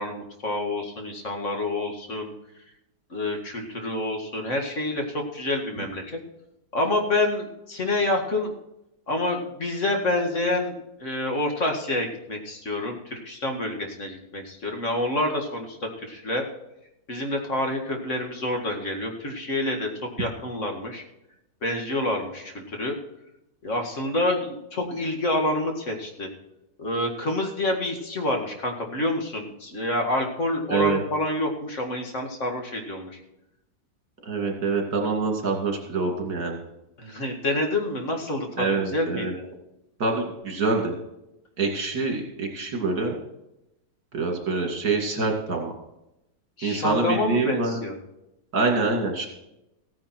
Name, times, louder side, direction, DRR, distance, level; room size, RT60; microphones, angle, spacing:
voice 1, 0.0-2.3 3.1-6.2 6.7-8.5 9.1-16.5 17.1-21.0 21.6-23.0 23.6-26.3 26.8-33.2 37.0-39.4 46.6-48.0, left 1 dB, 40° left, 3 dB, 2.2 m, -28 dB
voice 2, 34.3-36.6 38.6-39.3 40.0-41.0 41.6-43.1 44.1-45.7 46.6-47.8 48.5-49.3, right 3 dB, 60° right, 2 dB, 2.9 m, -25 dB
15.0 x 9.7 x 4.5 m, 0.89 s
omnidirectional pair, 1.9 m